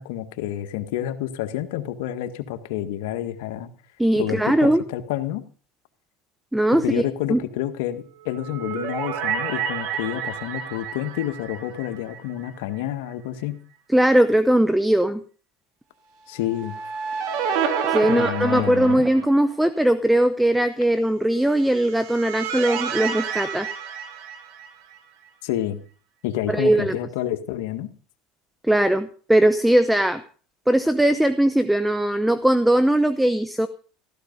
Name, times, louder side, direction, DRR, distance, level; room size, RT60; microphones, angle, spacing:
voice 1, 0.0-3.7 4.1-5.4 6.7-13.6 16.3-16.7 18.1-19.1 25.4-25.8 26.2-27.9, left 12 dB, 80° left, 8 dB, 1.6 m, -29 dB
voice 2, 4.0-4.8 6.5-7.0 7.3-7.4 13.9-15.2 17.9-23.7 26.5-26.9 28.6-30.2 30.7-33.7, right 1 dB, 5° right, 13 dB, 0.8 m, -19 dB
sound 1, 8.2-12.5 12.8-12.9 16.4-19.5 21.6-25.0, right 7 dB, 65° right, 2.6 m, -29 dB
15.0 x 13.5 x 5.3 m, 0.42 s
supercardioid pair, 115°, 0 cm